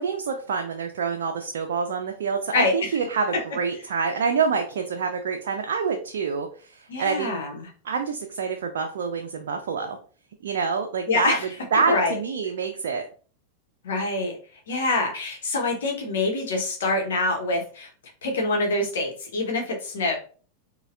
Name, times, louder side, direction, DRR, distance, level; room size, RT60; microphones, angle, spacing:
voice 1, 0.0-7.3 7.8-10.0 10.4-11.4 11.7-13.1, right 5 dB, 60° right, 3 dB, 0.4 m, -27 dB
voice 2, 2.5-3.0 3.3-3.4 6.9-7.7 11.1-11.5 11.9-12.2 13.8-14.4 14.7-17.9 18.2-20.2, left 2 dB, 60° left, 2 dB, 1.0 m, -25 dB
4.0 x 2.3 x 2.5 m, 0.40 s
figure-of-eight pair, 90°, 0 cm